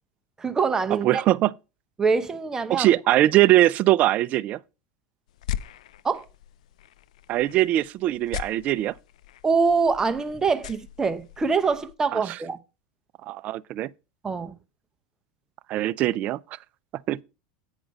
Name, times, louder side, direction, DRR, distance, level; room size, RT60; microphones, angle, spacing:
voice 1, 0.4-1.2 2.0-2.9 6.0-6.3 9.4-12.6 14.2-14.6, right 5 dB, 15° right, 0.8 m, -24 dB
voice 2, 0.9-1.5 2.7-4.6 7.3-8.9 12.1-12.2 13.2-13.9 15.7-16.4 17.1-17.2, right 15 dB, 45° right, 0.4 m, -21 dB
sound 1, 5.3-11.9, left 12 dB, 85° left, 0.4 m, -39 dB
9.0 x 5.1 x 5.3 m
supercardioid pair, 125°, 4 cm